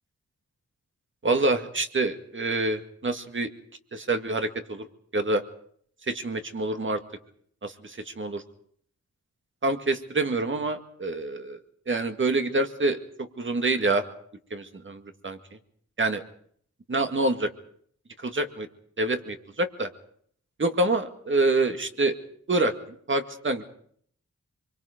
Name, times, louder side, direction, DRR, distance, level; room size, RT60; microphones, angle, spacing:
voice 1, 1.2-3.5 3.9-4.9 5.1-5.4 6.1-7.0 7.6-8.4 9.6-11.6 11.9-14.0 14.5-15.4 16.0-16.2 16.9-17.5 18.2-18.7 19.0-19.9 20.6-22.1 22.5-22.7 23.1-23.6, right 2 dB, 40° right, 6 dB, 2.1 m, -26 dB
25.5 x 23.5 x 5.2 m, 0.62 s
cardioid pair, 75°, 29 cm